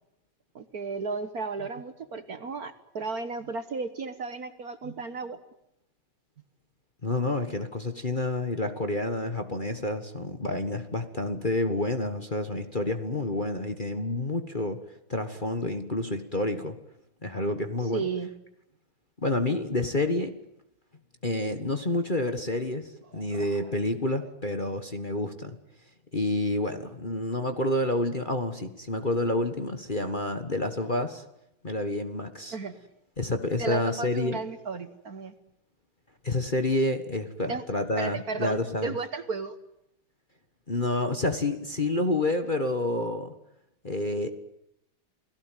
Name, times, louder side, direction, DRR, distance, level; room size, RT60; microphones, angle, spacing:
voice 1, 0.5-5.4 17.9-18.3 23.1-23.7 32.5-32.7 33.6-35.3 37.5-37.6 38.0-39.5, right 4 dB, 50° right, 11 dB, 1.5 m, -34 dB
voice 2, 7.0-14.8 15.1-16.8 17.2-18.0 19.2-20.3 21.2-25.6 26.1-31.2 31.6-32.5 33.2-34.4 36.2-38.9 40.7-43.3 43.8-44.3, left 2 dB, 25° left, 6 dB, 1.4 m, -29 dB
29.0 x 18.5 x 9.2 m, 0.83 s
omnidirectional pair, 2.4 m